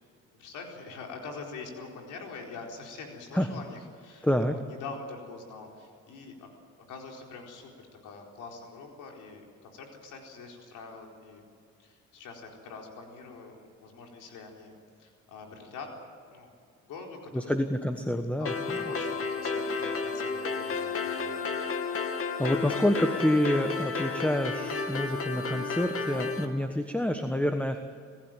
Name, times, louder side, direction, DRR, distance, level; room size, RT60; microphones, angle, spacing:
voice 1, 0.3-6.5 6.8-7.7 8.0-11.4 11.8-14.7 15.0-15.9 16.3-16.5 16.8-17.5 18.4-21.4, left 4 dB, 90° left, 1 dB, 4.4 m, -44 dB
voice 2, 4.2-4.5 17.3-18.8 22.4-27.8, left 1 dB, 5° left, 6 dB, 1.3 m, -28 dB
sound 1, 18.5-26.5, left 4 dB, 45° left, 2.4 m, -32 dB
26.5 x 15.0 x 9.2 m, 2.3 s
cardioid pair, 90°, 30 cm